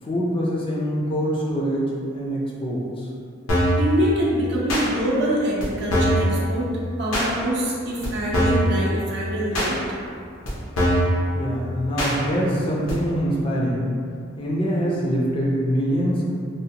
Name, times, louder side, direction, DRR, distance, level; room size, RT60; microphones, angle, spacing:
voice 1, 0.0-3.1 11.3-13.9 14.3-16.2, equal, 25° left, -5 dB, 0.4 m, -24 dB
sound 1, 3.5-3.8 4.7-4.9 5.6-5.7 5.9-6.3 7.1-7.3 8.0-8.1 8.3-8.7 9.5-9.7 10.4-10.5 10.8-11.1 12.0-12.1 12.9-13.0, equal, 90° left, 0.7 m, -20 dB
voice 2, 3.8-6.7 7.0-9.8, equal, 60° right, -5 dB, 0.6 m, -24 dB
2.7 x 2.1 x 2.7 m, 2.4 s
head